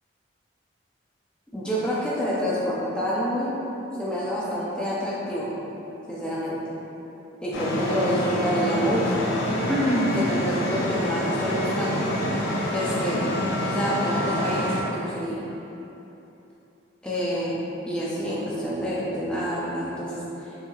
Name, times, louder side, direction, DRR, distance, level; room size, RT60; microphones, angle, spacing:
voice 1, 1.5-3.5 4.0-5.5 6.1-6.6 7.4-9.2 9.7-12.0 12.7-13.2 13.6-15.5 17.0-17.6 17.9-20.2, equal, 5° left, -8 dB, 0.5 m, -27 dB
sound 1, 7.5-14.8, left 1 dB, 80° left, 0.5 m, -27 dB
4.3 x 2.7 x 2.4 m, 3.0 s
head